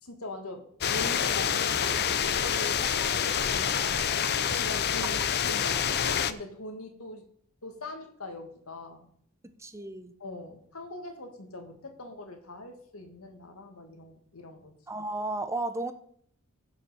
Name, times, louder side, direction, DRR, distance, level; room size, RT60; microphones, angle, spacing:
voice 1, 0.0-4.3 4.5-7.2 7.6-9.1 10.2-14.7, left 1 dB, 80° left, 6 dB, 1.8 m, -42 dB
sound 1, 0.8-6.3, left 8 dB, 50° left, 0.6 m, -27 dB
voice 2, 9.4-10.1 14.9-15.9, right 2 dB, 15° right, 10 dB, 0.7 m, -33 dB
15.5 x 5.7 x 5.6 m, 0.64 s
head